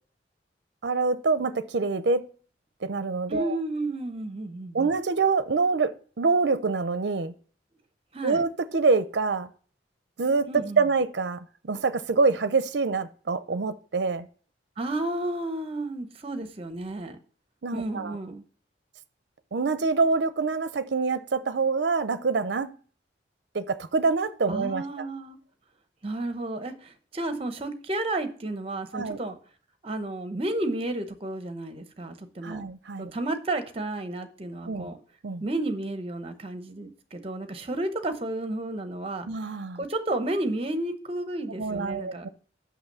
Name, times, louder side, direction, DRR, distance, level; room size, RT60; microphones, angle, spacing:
voice 1, 0.8-2.2 2.8-3.6 4.7-7.3 8.2-9.5 10.2-14.3 17.6-18.2 19.5-22.7 23.5-24.8 28.9-29.2 32.4-33.1 34.7-34.9 35.2-35.4 39.3-39.8 41.6-42.3, right 4 dB, 65° right, 0.5 m, -26 dB
voice 2, 3.3-4.9 8.1-8.5 10.5-10.8 14.8-17.2 17.7-18.4 24.5-25.4 26.0-29.4 29.8-32.6 33.0-35.0 35.4-39.3 39.7-42.3, right 2 dB, 30° right, 0.9 m, -32 dB
6.0 x 5.8 x 6.7 m
head